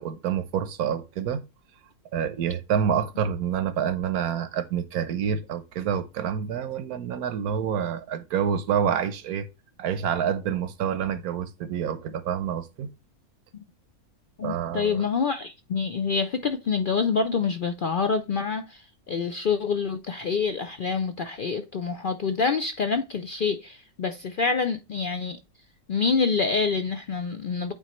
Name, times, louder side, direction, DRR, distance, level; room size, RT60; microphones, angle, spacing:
voice 1, 0.0-1.4 2.1-9.5 9.8-12.9 14.4-15.0, right 8 dB, 85° right, 1.3 m, -27 dB
voice 2, 14.4-25.4 25.9-27.7, left 5 dB, 60° left, 0.5 m, -26 dB
8.7 x 4.1 x 3.0 m
omnidirectional pair, 1.5 m